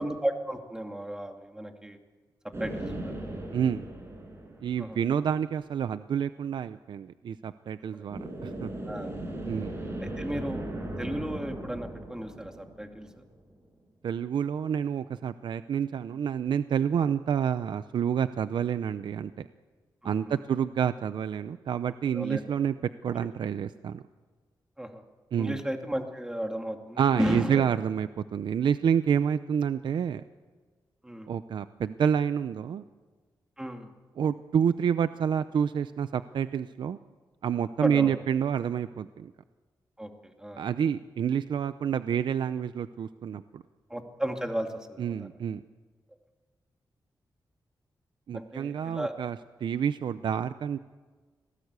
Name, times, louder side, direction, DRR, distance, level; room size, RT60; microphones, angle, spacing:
voice 1, 0.0-2.0 2.6-3.1 4.8-5.0 7.9-8.0 8.8-9.1 10.0-10.7 11.0-13.1 20.0-20.4 22.1-22.4 23.1-23.3 24.8-25.0 25.4-27.7 31.0-31.3 33.6-33.9 37.8-38.2 40.0-40.1 40.4-40.6 43.9-45.3 48.3-49.1, right 1 dB, 10° right, 4 dB, 2.4 m, -34 dB
sound 1, 2.5-5.3 8.1-13.5, right 1 dB, 35° right, 6.1 m, -38 dB
voice 2, 3.5-3.8 4.6-8.7 9.5-9.8 14.0-19.5 20.0-22.8 23.0-24.0 25.3-25.6 27.0-30.2 31.3-32.8 34.2-37.0 37.4-39.3 40.6-43.6 45.0-45.6 48.3-49.4 49.6-50.8, right 8 dB, 80° right, 12 dB, 0.6 m, -28 dB
25.5 x 18.0 x 8.2 m, 1.4 s
wide cardioid pair, 95°, 8 cm